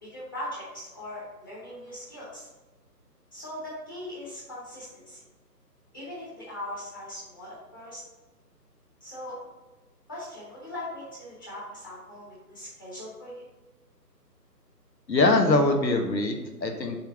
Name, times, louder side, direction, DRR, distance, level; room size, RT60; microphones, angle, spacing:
voice 1, 0.0-2.5 3.3-5.2 5.9-8.0 9.0-9.4 10.1-13.4, left 1 dB, 15° left, -8 dB, 1.0 m, -40 dB
voice 2, 15.1-17.0, left 2 dB, 85° left, 4 dB, 1.4 m, -23 dB
5.7 x 3.8 x 5.9 m, 1.1 s
figure-of-eight pair, 155°, 50 cm